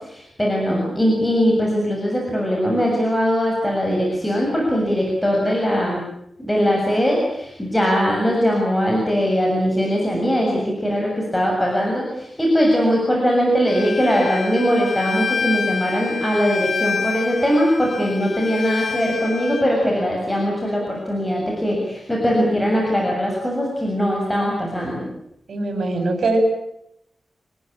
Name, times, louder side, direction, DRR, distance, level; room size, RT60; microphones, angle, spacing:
voice 1, 0.0-6.0 6.4-25.1, equal, 10° left, -2 dB, 7.1 m, -20 dB
Bowed string instrument, 13.7-19.6, left 5 dB, 75° left, 3.9 m, -28 dB
voice 2, 25.5-26.4, right 3 dB, 70° right, 6 dB, 7.7 m, -22 dB
28.0 x 20.0 x 8.8 m, 0.78 s
wide cardioid pair, 125°, 0 cm